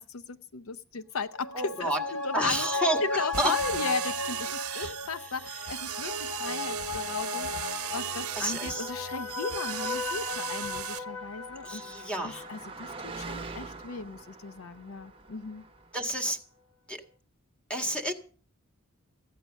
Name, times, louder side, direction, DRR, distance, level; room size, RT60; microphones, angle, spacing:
voice 1, 0.0-15.6, left 4 dB, 70° left, 13 dB, 0.6 m, -37 dB
sound 1, 1.3-14.1 14.5-14.6, left 3 dB, 85° left, 1.4 m, -36 dB
voice 2, 1.5-2.0 2.3-3.5 4.7-5.0 8.4-8.9 11.6-12.5 13.4-13.5 15.9-16.4 16.9-17.0 17.7-18.1, right 1 dB, 5° left, 3 dB, 1.8 m, -30 dB
sound 2, 3.3-11.0, right 10 dB, 85° right, 0.7 m, -37 dB
Car passing by, 10.1-16.1, right 4 dB, 25° right, 0.9 m, -45 dB
15.5 x 9.3 x 6.3 m, 0.42 s
head